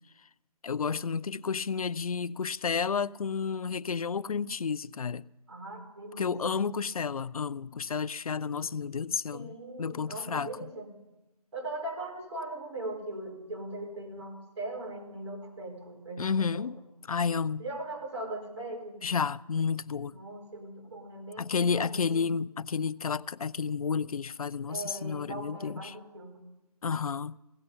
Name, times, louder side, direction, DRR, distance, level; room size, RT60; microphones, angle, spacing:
voice 1, 0.6-5.3 6.2-10.7 16.2-16.8 17.1-17.6 19.0-20.2 21.4-25.9 26.8-27.4, left 5 dB, 65° left, 0.4 m, -31 dB
voice 2, 5.5-6.6 9.3-10.9 11.5-16.7 17.6-19.0 20.1-22.3 24.7-26.4, right 2 dB, 45° right, 4.4 m, -40 dB
16.5 x 13.5 x 5.4 m
figure-of-eight pair, 170°, 20 cm